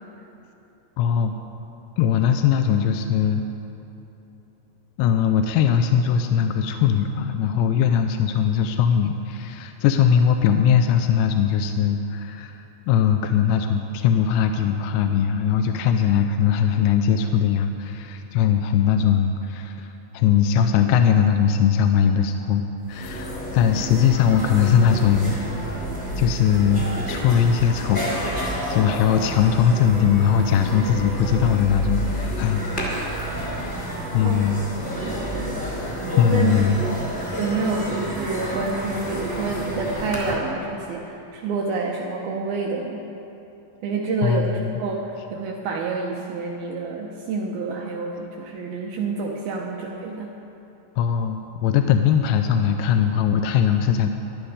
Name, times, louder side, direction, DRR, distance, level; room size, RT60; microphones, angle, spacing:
voice 1, 1.0-1.3 2.0-3.4 5.0-25.4 26.2-33.0 34.1-34.6 36.2-36.8 44.2-44.8 51.0-54.1, left 8 dB, 85° left, 7 dB, 2.8 m, -20 dB
sound 1, 22.6-22.7 22.9-40.3, equal, 15° left, 2.1 m, -29 dB
voice 2, 35.0-35.6 36.3-36.5 37.4-43.1 43.8-50.3, right 4 dB, 75° right, 0 dB, 2.3 m, -28 dB
14.5 x 12.0 x 4.9 m, 2.9 s
omnidirectional pair, 5.2 m